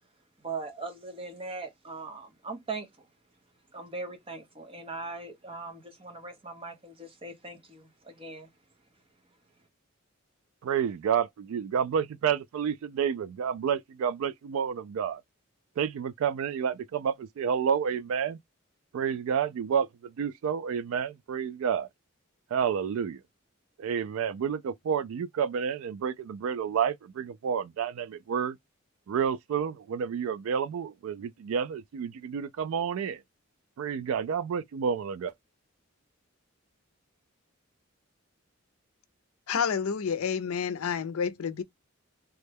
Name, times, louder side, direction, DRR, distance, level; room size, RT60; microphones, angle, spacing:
voice 1, 0.4-3.1 3.7-8.5, right 3 dB, 25° right, 0.7 m, -40 dB
voice 2, 10.6-15.2 15.8-18.4 18.9-21.9 22.5-23.2 23.8-28.6 29.1-33.2 33.8-35.3, right 7 dB, 75° right, 0.3 m, -30 dB
voice 3, 39.5-41.6, left 6 dB, 85° left, 0.5 m, -29 dB
3.3 x 2.2 x 3.3 m
head